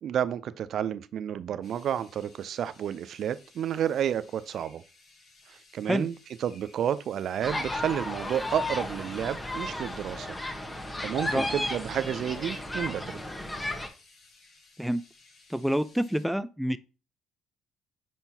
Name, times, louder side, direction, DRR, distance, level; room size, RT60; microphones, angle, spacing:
voice 1, 0.0-4.8 5.7-10.4 11.0-13.2, right 9 dB, 60° right, 0.4 m, -31 dB
sound 1, 1.6-16.3, left 3 dB, 55° left, 4.1 m, -58 dB
sound 2, 7.4-13.9, left 1 dB, 15° left, 1.4 m, -34 dB
voice 2, 15.5-16.8, equal, ahead, 0.6 m, -27 dB
9.0 x 4.3 x 2.9 m
hypercardioid pair, 50°, 0 cm